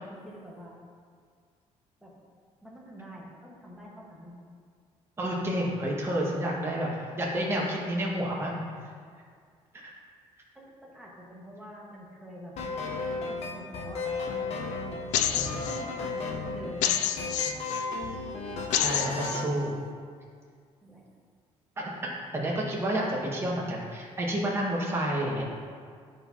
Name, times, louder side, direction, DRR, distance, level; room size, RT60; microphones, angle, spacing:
voice 1, 0.1-0.8 2.0-2.1 2.6-4.3 10.5-12.5 13.3-14.1 14.3-14.5 15.1-17.6 20.8-21.1, equal, 5° right, -4 dB, 1.4 m, -46 dB
voice 2, 5.2-8.6 9.8-9.9 15.2-15.5 18.8-19.8 21.8-25.4, right 1 dB, 20° right, -4 dB, 1.5 m, -30 dB
sound 1, 12.6-19.5, left 3 dB, 60° left, 0.9 m, -34 dB
sound 2, 15.1-15.8 16.8-17.8 18.7-19.4, left 11 dB, 80° left, 0.4 m, -28 dB
11.5 x 4.6 x 2.8 m, 2.1 s
cardioid pair, 130°, 12 cm